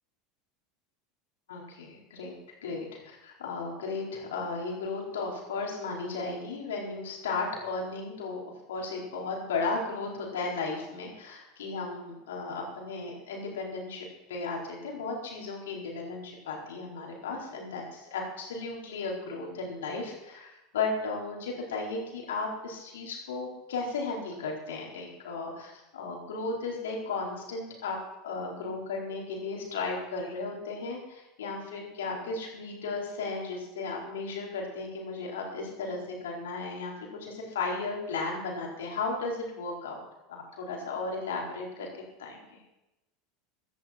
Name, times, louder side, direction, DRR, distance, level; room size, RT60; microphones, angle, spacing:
voice 1, 1.5-2.4 2.6-8.4 8.7-28.0 28.2-40.0 40.3-41.9 42.2-42.6, left 3 dB, 75° left, -1 dB, 4.5 m, -35 dB
15.5 x 13.0 x 4.4 m, 0.94 s
figure-of-eight pair, 80°, 0 cm